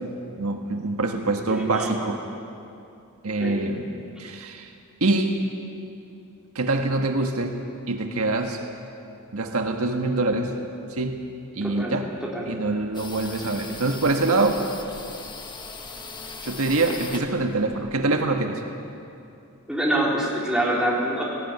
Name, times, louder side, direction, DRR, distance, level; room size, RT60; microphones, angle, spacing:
voice 1, 0.3-2.2 3.2-3.9 4.2-4.7 5.0-5.4 6.5-7.6 7.9-8.6 9.3-10.5 10.9-11.3 11.5-12.1 12.5-14.6 16.4-18.6, right 2 dB, 75° right, 4 dB, 1.5 m, -24 dB
voice 2, 1.5-2.0 3.4-3.6 11.6-11.9 12.2-12.4 19.7-21.2, right 1 dB, 5° right, -5 dB, 3.9 m, -25 dB
sound 1, 12.9-18.4, left 4 dB, 20° left, 1.1 m, -39 dB
18.0 x 18.0 x 9.4 m, 2.7 s
head